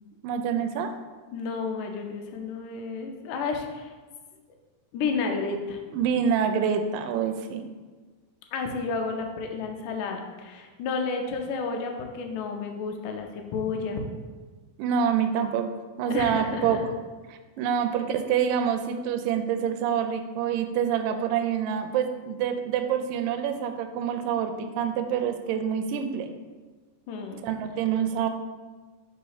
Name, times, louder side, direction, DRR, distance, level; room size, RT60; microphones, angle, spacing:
voice 1, 0.2-0.9 5.9-7.6 14.8-15.7 16.0-16.8 17.3-26.3 27.4-28.3, right 8 dB, 80° right, 7 dB, 2.1 m, -26 dB
voice 2, 1.3-3.9 4.9-5.8 8.5-14.0 16.1-16.8 27.1-27.4, left 4 dB, 75° left, 3 dB, 2.0 m, -31 dB
4.9 x 4.0 x 4.8 m, 1.4 s
omnidirectional pair, 4.1 m